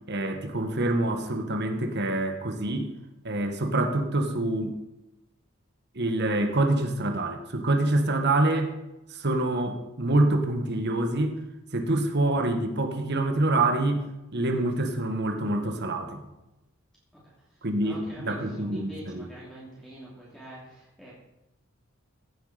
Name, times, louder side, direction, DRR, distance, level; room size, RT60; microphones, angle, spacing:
voice 1, 0.1-2.9 3.2-4.7 5.9-8.7 9.1-11.4 11.7-14.1 14.3-16.2 17.6-19.3, right 2 dB, 55° right, 7 dB, 1.5 m, -26 dB
voice 2, 17.1-21.1, right 1 dB, 5° left, -7 dB, 2.9 m, -45 dB
15.0 x 8.0 x 5.0 m, 0.96 s
head